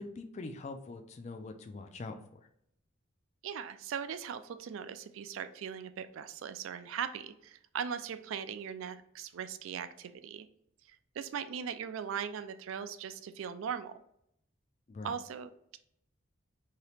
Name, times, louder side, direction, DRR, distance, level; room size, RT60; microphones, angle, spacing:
voice 1, 0.0-2.4 14.9-15.1, left 3 dB, 35° left, 7 dB, 0.3 m, -43 dB
voice 2, 3.4-10.5 10.9-14.0 15.0-15.8, right 7 dB, 70° right, 11 dB, 0.3 m, -39 dB
2.8 x 2.8 x 3.3 m, 0.73 s
head